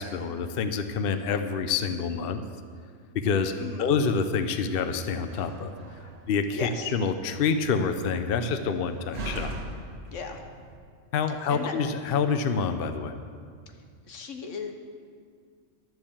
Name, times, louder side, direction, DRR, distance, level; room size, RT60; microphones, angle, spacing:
voice 1, 0.0-2.4 3.1-5.7 6.3-9.5 11.1-13.1, left 5 dB, 55° left, 9 dB, 0.8 m, -27 dB
voice 2, 3.6-3.9 6.5-7.0 10.1-10.5 11.3-11.7 14.1-14.7, left 5 dB, 90° left, 4 dB, 1.4 m, -36 dB
Slam, 5.2-10.8, right 1 dB, 70° right, 1.7 m, -41 dB
12.0 x 7.7 x 7.2 m, 2.1 s
omnidirectional pair, 1.2 m